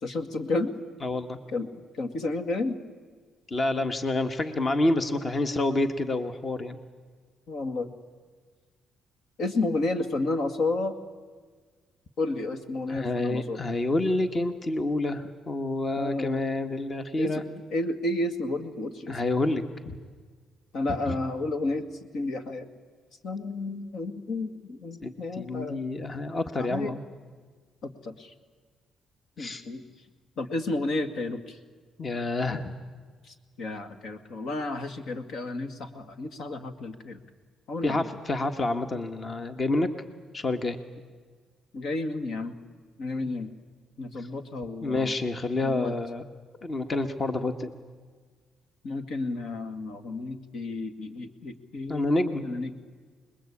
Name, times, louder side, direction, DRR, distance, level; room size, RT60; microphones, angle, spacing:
voice 1, 0.0-0.7 1.5-2.8 7.5-7.9 9.4-11.0 12.2-13.6 16.0-16.4 17.2-19.2 20.7-22.7 23.2-25.8 26.6-27.0 27.8-28.3 29.4-29.8 30.4-31.6 33.2-37.2 37.7-38.1 41.7-42.5 43.0-43.5 44.0-45.1 45.6-45.9 48.8-52.2 52.4-52.7, left 2 dB, 70° left, 10 dB, 2.1 m, -31 dB
voice 2, 1.0-1.4 3.5-6.8 12.9-17.4 19.1-20.0 21.1-21.2 25.0-27.0 29.4-29.6 32.0-32.7 37.8-39.9 40.3-40.8 44.8-46.2 46.6-47.7 51.9-52.4, left 2 dB, 35° left, 8 dB, 1.6 m, -28 dB
26.0 x 21.5 x 8.6 m, 1.5 s
cardioid pair, 90°, 0 cm